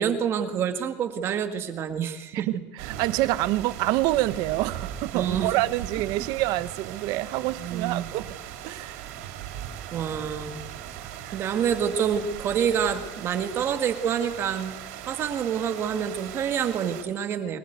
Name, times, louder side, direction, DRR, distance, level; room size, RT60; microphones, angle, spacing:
voice 1, 0.0-2.6 5.1-5.5 7.6-8.1 9.9-10.6 11.3-14.7 15.1-17.6, right 8 dB, 30° right, 2.0 m, -27 dB
voice 2, 2.3-8.3 8.6-9.0 11.2-11.3, right 17 dB, 50° right, 1.0 m, -27 dB
sound 1, 2.8-17.0, right 10 dB, 90° right, 3.7 m, -39 dB
23.0 x 20.0 x 8.1 m
cardioid pair, 175°, 8 cm